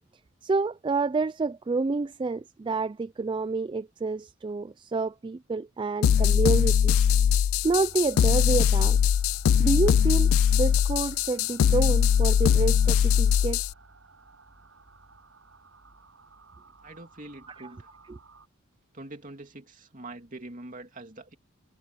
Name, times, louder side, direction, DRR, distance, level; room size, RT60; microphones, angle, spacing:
voice 1, 0.4-7.0 7.6-9.0 9.6-13.6, right 3 dB, 25° right, 0.3 m, -28 dB
sound 1, 6.0-13.7, left 8 dB, 85° left, 0.3 m, -21 dB
sound 2, 7.6-18.5, right 2 dB, 75° right, 6.1 m, -53 dB
voice 2, 16.8-17.9 18.9-21.3, right 2 dB, 40° right, 2.8 m, -44 dB
head